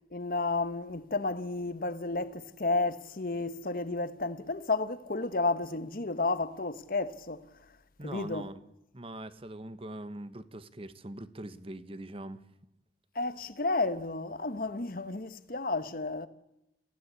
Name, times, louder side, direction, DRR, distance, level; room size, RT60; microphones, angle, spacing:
voice 1, 0.1-7.4 8.0-8.5 13.1-16.3, left 3 dB, 50° left, 1.2 m, -32 dB
voice 2, 8.0-8.6 8.9-12.4, right 1 dB, 30° right, 1.2 m, -42 dB
27.5 x 16.0 x 8.4 m
head